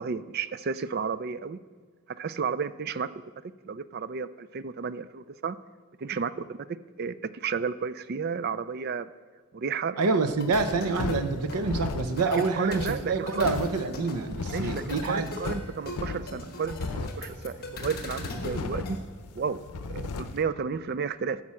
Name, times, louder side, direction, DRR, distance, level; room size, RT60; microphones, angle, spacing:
voice 1, 0.0-1.6 2.1-3.2 3.6-5.6 6.0-6.6 7.0-9.1 9.5-10.2 12.4-13.5 14.5-19.0 19.4-19.6 19.9-21.4, right 5 dB, 45° right, 15 dB, 0.3 m, -32 dB
voice 2, 10.0-15.3, right 4 dB, 90° right, 9 dB, 0.7 m, -27 dB
sound 1, 10.4-19.0, left 2 dB, 45° left, 1.2 m, -40 dB
sound 2, 10.5-20.4, left 3 dB, 90° left, 0.6 m, -36 dB
9.7 x 5.9 x 7.5 m, 1.5 s
head